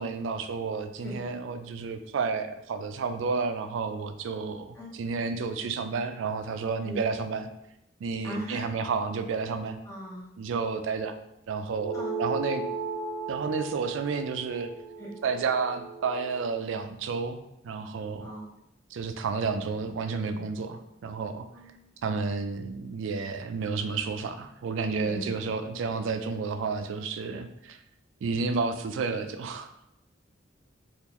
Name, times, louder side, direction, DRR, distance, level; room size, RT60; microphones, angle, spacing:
voice 1, 0.0-7.5 8.0-9.8 10.4-11.1 11.5-12.6 13.3-14.7 15.2-18.3 18.9-21.5 22.0-27.8 28.2-29.7, right 4 dB, 75° right, 8 dB, 0.3 m, -31 dB
voice 2, 4.7-5.3 6.8-7.0 8.2-8.6 9.8-10.3 11.9-12.2 15.0-15.1 18.2-18.5 21.5-21.9 25.0-25.3, equal, 15° left, -4 dB, 0.6 m, -39 dB
sound 1, 11.8-16.6, right 3 dB, 90° left, 0.7 m, -36 dB
3.6 x 2.4 x 2.9 m, 0.83 s
head